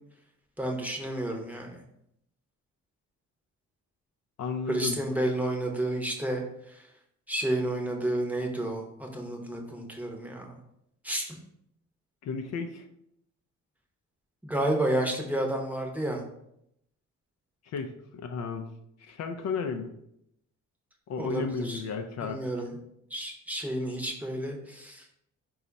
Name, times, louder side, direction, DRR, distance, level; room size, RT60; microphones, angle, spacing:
voice 1, 0.6-1.7 4.7-6.4 7.3-10.5 11.0-11.4 14.4-16.2 21.2-21.8 22.2-22.7 23.1-25.0, right 1 dB, 5° right, 1 dB, 0.8 m, -31 dB
voice 2, 4.4-5.0 12.2-12.8 17.7-18.7 19.1-19.9 21.1-22.4, left 5 dB, 60° left, 5 dB, 0.5 m, -33 dB
4.1 x 2.3 x 3.9 m, 0.77 s
cardioid pair, 90°, 30 cm